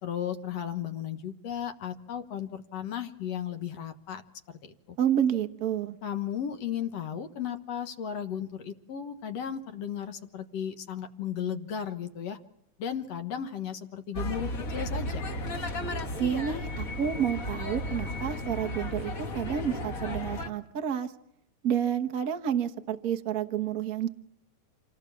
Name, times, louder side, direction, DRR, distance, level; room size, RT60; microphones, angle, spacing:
voice 1, 0.0-4.2 4.5-5.0 6.0-12.4 12.8-15.2, left 9 dB, 60° left, 7 dB, 2.2 m, -35 dB
voice 2, 5.0-6.0 16.2-21.1 21.6-24.1, right 9 dB, 90° right, 6 dB, 0.7 m, -29 dB
sound 1, 14.1-20.5, left 1 dB, 35° left, 1.6 m, -34 dB
27.5 x 18.0 x 7.1 m, 0.84 s
omnidirectional pair, 3.5 m